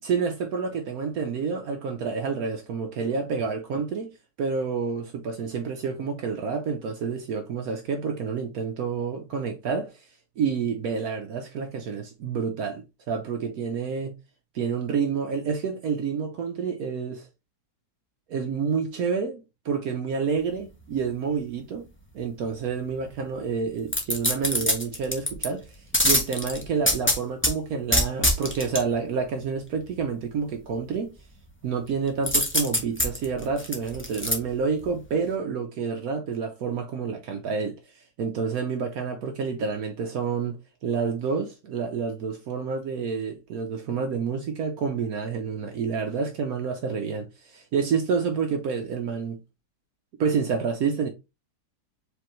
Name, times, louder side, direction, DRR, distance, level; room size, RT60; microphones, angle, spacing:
voice 1, 0.0-4.1 4.4-10.1 10.4-14.2 14.5-17.3 18.3-21.9 22.1-31.1 31.6-49.4 50.2-51.1, right 5 dB, 65° right, 1.1 m, -29 dB
sound 1, 23.9-25.5 25.9-27.5 27.9-28.8 32.3-34.3 34.8-34.9, left 1 dB, 15° left, 0.5 m, -23 dB
5.0 x 3.4 x 3.1 m
omnidirectional pair, 1.8 m